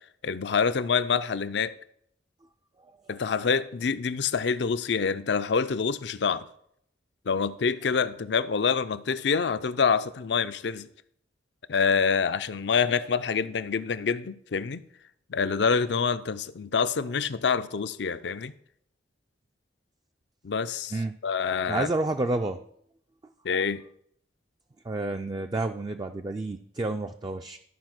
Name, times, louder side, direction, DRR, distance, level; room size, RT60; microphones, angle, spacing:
voice 1, 0.2-1.7 3.1-6.5 7.3-10.9 11.7-14.8 15.3-18.5 20.4-20.9 21.2-21.9 23.4-23.8, left 5 dB, 70° left, 0.5 m, -26 dB
voice 2, 21.7-22.6 24.9-27.6, right 2 dB, 25° right, 0.3 m, -29 dB
13.0 x 4.9 x 6.0 m
head